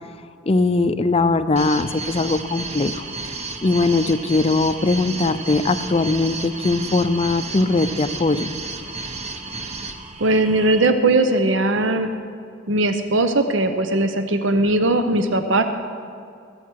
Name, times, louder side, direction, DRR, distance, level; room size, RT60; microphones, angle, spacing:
voice 1, 0.5-2.9 3.6-8.5, left 3 dB, 30° left, 11 dB, 0.5 m, -20 dB
sound 1, 1.6-10.9, right 3 dB, 35° right, 0.8 m, -32 dB
voice 2, 10.2-12.1 12.7-15.6, right 2 dB, 75° right, 8 dB, 0.8 m, -19 dB
19.5 x 8.2 x 4.7 m, 2.3 s
head